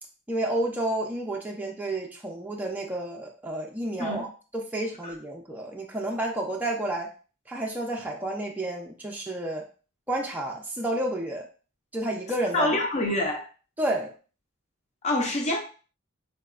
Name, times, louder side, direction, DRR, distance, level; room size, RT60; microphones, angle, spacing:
voice 1, 0.3-4.3 4.5-7.1 7.5-9.7 10.1-11.5 11.9-12.7 13.8-14.1, right 1 dB, 10° right, -1 dB, 0.4 m, -30 dB
voice 2, 12.5-13.5 15.0-15.6, left 2 dB, 30° left, 2 dB, 0.6 m, -26 dB
4.0 x 2.2 x 2.3 m, 0.36 s
head